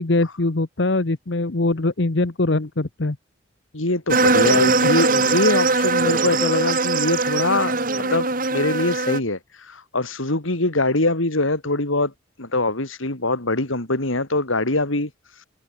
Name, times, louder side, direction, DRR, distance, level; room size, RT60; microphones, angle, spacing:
voice 1, 0.0-3.2 4.8-4.9, left 2 dB, 60° left, 1.0 m, -22 dB
voice 2, 3.7-12.1 12.4-15.4, left 2 dB, 85° left, 3.5 m, -23 dB
sound 1, 4.1-9.2, right 3 dB, 45° right, 2.8 m, -20 dB
head